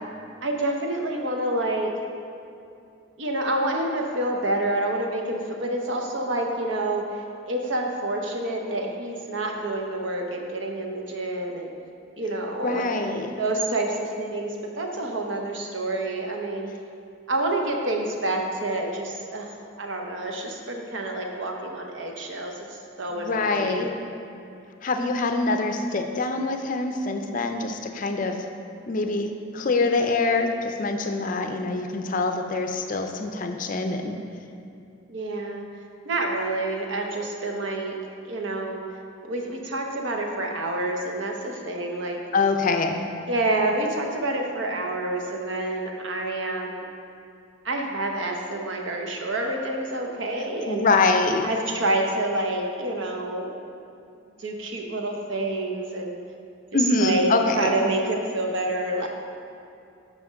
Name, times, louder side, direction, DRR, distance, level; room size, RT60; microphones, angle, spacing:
voice 1, 0.4-1.9 3.2-7.1 7.5-11.7 12.2-13.0 13.4-16.7 17.3-19.5 19.8-23.9 31.6-31.7 35.1-35.7 36.0-37.9 38.2-38.8 39.2-42.2 43.3-46.9 47.6-50.8 51.4-53.6 54.4-56.2 57.0-59.1, right 2 dB, 65° right, 2 dB, 0.8 m, -28 dB
voice 2, 12.6-13.3 23.1-23.9 24.8-28.4 28.9-34.2 42.3-43.0 50.7-51.5 56.7-57.7, left 3 dB, 40° left, 5 dB, 0.4 m, -24 dB
5.9 x 5.1 x 6.3 m, 2.6 s
head